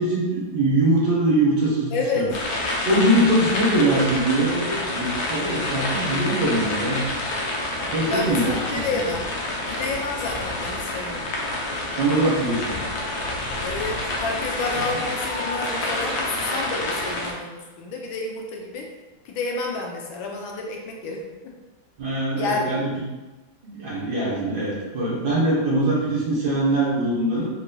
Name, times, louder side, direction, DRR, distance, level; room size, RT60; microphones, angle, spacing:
voice 1, 0.0-2.3 2.8-7.0 7.8-8.8 12.0-12.8 14.8-15.0 22.0-22.9 23.6-27.5, right 1 dB, 60° right, -5 dB, 1.4 m, -22 dB
voice 2, 1.9-2.3 8.1-9.3 9.6-11.2 13.6-18.9 19.2-21.2 22.4-22.8, left 3 dB, 85° left, 0 dB, 1.5 m, -29 dB
sound 1, 2.3-17.3, left 1 dB, 65° left, 1.0 m, -28 dB
3.9 x 3.9 x 2.2 m, 1.2 s
omnidirectional pair, 2.1 m